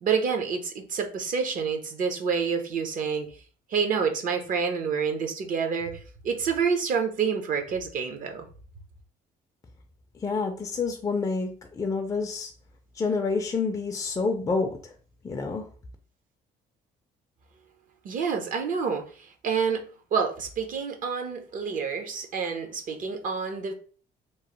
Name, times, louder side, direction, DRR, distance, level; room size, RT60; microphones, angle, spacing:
voice 1, 0.0-3.3 3.7-8.5 18.0-19.1 19.4-23.7, right 6 dB, 50° right, 0.6 m, -28 dB
voice 2, 10.2-12.5 13.0-14.8 15.2-15.6, left 4 dB, 20° left, 0.4 m, -28 dB
3.0 x 2.0 x 2.9 m
cardioid pair, 110°, 17 cm